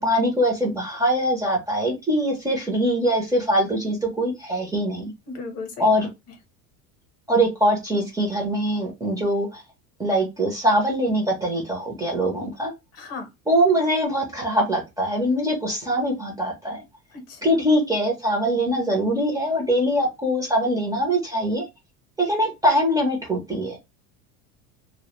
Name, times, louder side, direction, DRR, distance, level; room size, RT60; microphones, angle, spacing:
voice 1, 0.0-5.1 5.8-6.1 7.3-9.6 10.0-12.7 13.5-16.8 17.4-21.7 22.2-23.8, equal, 10° right, 0.5 m, -22 dB
voice 2, 5.3-6.1 12.9-13.3 17.1-17.4, left 4 dB, 45° left, 0.8 m, -36 dB
2.1 x 2.1 x 2.9 m
cardioid pair, 140°, 35 cm